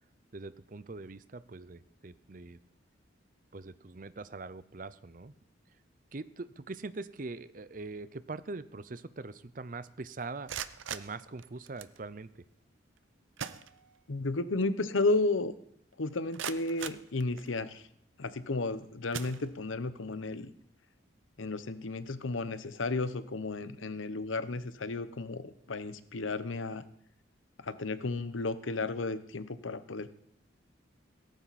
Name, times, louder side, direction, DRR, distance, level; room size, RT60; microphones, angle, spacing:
voice 1, 0.3-2.6 3.5-5.3 6.1-10.5 10.9-12.5, right 3 dB, 45° right, 15 dB, 0.6 m, -42 dB
sound 1, 10.3-12.0 13.0-13.1 13.4-14.3 14.6-14.7 15.3-15.4 15.9-17.8 18.4-18.6 19.1-19.9, right 8 dB, 85° right, 0.7 m, -42 dB
voice 2, 14.1-15.5 16.0-17.9 18.2-20.5 21.4-26.8 27.6-30.1, left 3 dB, 90° left, 13 dB, 0.9 m, -33 dB
17.5 x 14.5 x 4.2 m, 0.68 s
head